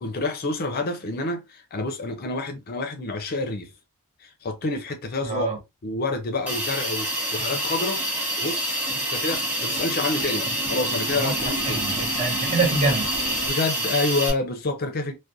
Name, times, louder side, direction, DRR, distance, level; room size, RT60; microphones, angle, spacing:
voice 1, 0.0-3.7 4.2-5.5 5.8-8.0 8.4-11.8 13.4-15.2, left 2 dB, 45° left, 0.5 m, -28 dB
voice 2, 5.2-5.6 10.5-10.6 11.2-13.1, right 3 dB, 30° right, 0.8 m, -26 dB
sound 1, 6.2-6.3 6.7-6.8 7.1-7.3 7.5-13.5, right 2 dB, 80° right, 1.1 m, -36 dB
Hiss, 6.5-14.3, right 1 dB, 5° right, 1.1 m, -27 dB
2.4 x 2.1 x 2.6 m
head